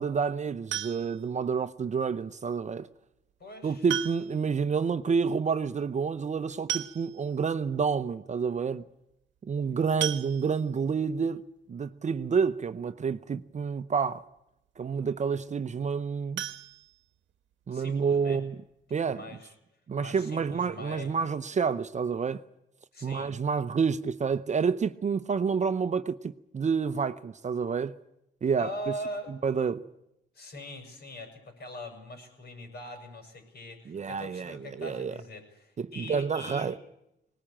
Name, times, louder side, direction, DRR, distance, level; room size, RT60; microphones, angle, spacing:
voice 1, 0.0-2.9 3.6-8.8 9.5-11.4 11.7-14.3 14.8-16.4 17.7-18.6 18.9-19.2 19.9-22.4 23.0-27.9 28.4-28.7 29.4-29.9 33.9-35.2 35.8-36.8, right 6 dB, 35° right, 0.8 m, -29 dB
sound 1, 0.7-1.3 2.8-2.9 3.9-4.5 4.8-4.9 5.2-5.3 6.3-6.4 6.7-7.4 8.0-8.1 8.4-8.6 10.0-10.8 16.3-17.5 17.9-18.0 18.4-18.5 18.9-19.0, right 11 dB, 70° right, 1.2 m, -35 dB
voice 2, 3.4-3.9 17.7-18.4 19.1-19.6 20.0-21.1 22.9-23.4 28.6-29.3 30.3-36.7, equal, 55° left, 7.5 m, -41 dB
20.0 x 19.5 x 8.8 m
cardioid pair, 90°, 20 cm